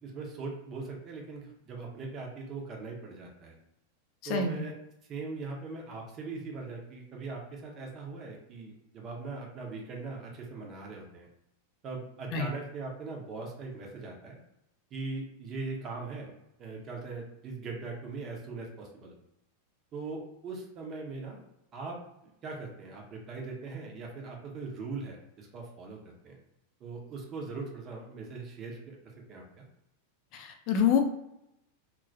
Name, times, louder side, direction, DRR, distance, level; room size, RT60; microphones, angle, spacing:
voice 1, 0.0-3.6 4.2-4.7 5.1-11.3 11.8-14.4 14.9-16.3 16.6-19.2 19.9-21.4 21.7-26.0 26.2-26.4 26.8-29.0 29.3-29.6, right 4 dB, 30° right, 0 dB, 0.7 m, -40 dB
voice 2, 4.3-4.6 12.3-12.5 30.3-31.0, left 7 dB, 40° left, 4 dB, 0.4 m, -26 dB
2.2 x 2.2 x 2.7 m, 0.83 s
figure-of-eight pair, 90°, 0 cm